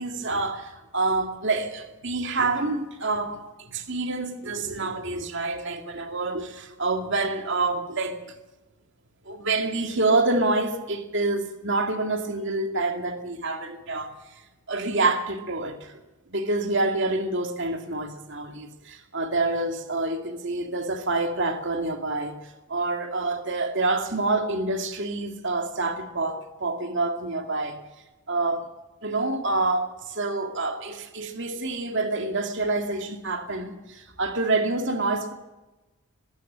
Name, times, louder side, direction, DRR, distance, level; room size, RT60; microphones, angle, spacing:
voice 1, 0.0-8.3 9.3-14.1 14.7-16.0 16.3-22.3 22.7-27.8 28.3-28.7 29.0-35.3, right 2 dB, 55° right, 2.4 m, -27 dB
20.5 x 16.5 x 7.5 m
head